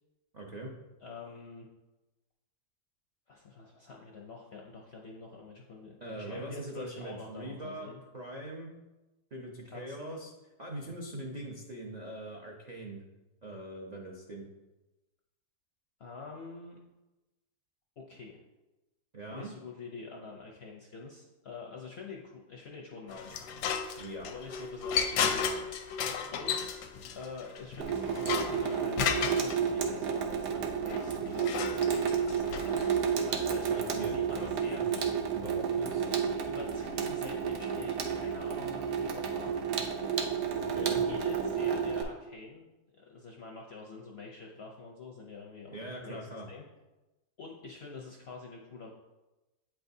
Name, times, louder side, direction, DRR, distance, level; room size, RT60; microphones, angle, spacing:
voice 1, 0.3-0.7 6.0-8.7 9.3-10.3 10.6-13.0 13.4-14.5 19.1-19.5 24.0-24.3 33.6-34.5 34.9-36.2 40.5-41.0 45.7-46.5, right 1 dB, 60° right, -2 dB, 0.4 m, -42 dB
voice 2, 1.0-1.7 3.3-8.0 9.6-10.2 16.0-16.8 18.0-18.4 19.3-23.4 24.2-25.6 26.3-26.8 27.1-31.8 33.2-34.9 35.7-39.5 40.7-42.7 42.9-45.8 46.0-46.2 46.5-46.6 47.4-48.9, left 4 dB, 60° left, -1 dB, 0.6 m, -46 dB
sound 1, 23.1-29.6 30.9-33.2, left 7 dB, 85° left, 1.2 m, -34 dB
Water tap faucet / Sink (filling or washing), 27.8-42.0, right 7 dB, 90° right, 1.3 m, -31 dB
8.5 x 4.6 x 2.6 m, 1.1 s
omnidirectional pair, 1.7 m